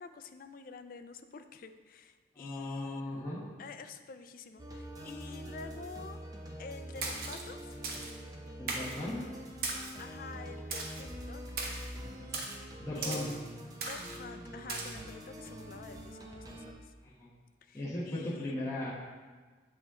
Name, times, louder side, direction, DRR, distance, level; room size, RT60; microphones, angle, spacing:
voice 1, 0.0-3.3 3.6-6.2 6.6-7.8 10.0-13.3 13.9-16.9 17.6-18.6, left 4 dB, 50° left, 9 dB, 0.4 m, -48 dB
voice 2, 2.3-3.5 8.6-9.3 12.8-13.3 17.0-17.3 17.7-18.9, left 1 dB, 15° left, -7 dB, 1.2 m, -37 dB
sound 1, 4.6-16.7, equal, 20° right, 0.7 m, -45 dB
Splash splatter, 7.0-7.4 7.8-8.1 8.7-9.0 9.6-10.0 10.7-11.0 11.6-11.9 12.3-12.6 13.0-13.4 13.8-14.2 14.7-14.9, right 3 dB, 55° right, 0.9 m, -37 dB
7.6 x 5.1 x 3.7 m, 1.4 s
head